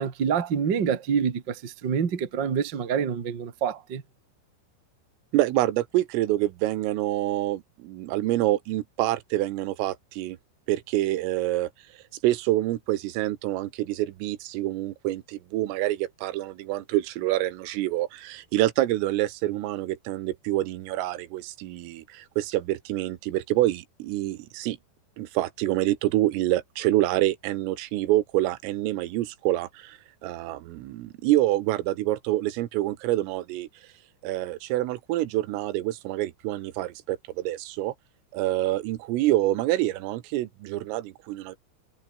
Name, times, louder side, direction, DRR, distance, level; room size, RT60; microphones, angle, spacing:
voice 1, 0.0-4.0, right 7 dB, 50° right, 1.3 m, -27 dB
voice 2, 5.3-10.4 10.7-11.7 12.2-24.8 25.2-33.7 34.2-37.9 38.3-41.6, right 15 dB, 85° right, 3.9 m, -27 dB
omnidirectional pair, 5.8 m